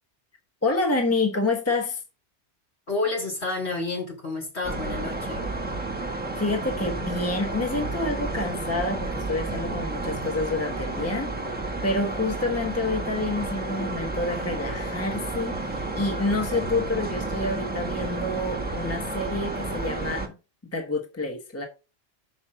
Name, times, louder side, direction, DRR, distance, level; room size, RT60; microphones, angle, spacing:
voice 1, 0.6-2.0 6.4-11.3 11.8-20.3 20.7-21.7, left 2 dB, 15° left, 1.1 m, -28 dB
voice 2, 2.9-5.4, left 3 dB, 70° left, 3.4 m, -30 dB
sound 1, 4.6-20.3, right 2 dB, 10° right, 1.4 m, -31 dB
6.3 x 4.8 x 5.8 m
omnidirectional pair, 1.1 m